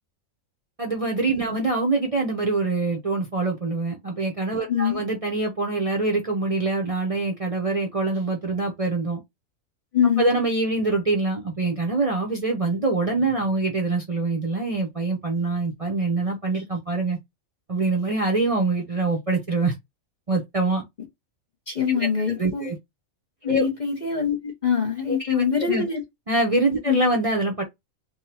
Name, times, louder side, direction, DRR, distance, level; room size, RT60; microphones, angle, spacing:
voice 1, 0.8-9.2 10.2-17.2 17.7-19.7 20.3-20.8 22.0-22.1 22.4-22.8 23.4-23.7 25.1-25.8 26.3-27.6, right 3 dB, 30° right, 0.7 m, -24 dB
voice 2, 4.7-5.0 9.9-10.3 21.7-22.7 23.4-26.0 26.8-27.0, left 7 dB, 40° left, 0.8 m, -24 dB
3.7 x 2.2 x 4.3 m
omnidirectional pair, 1.4 m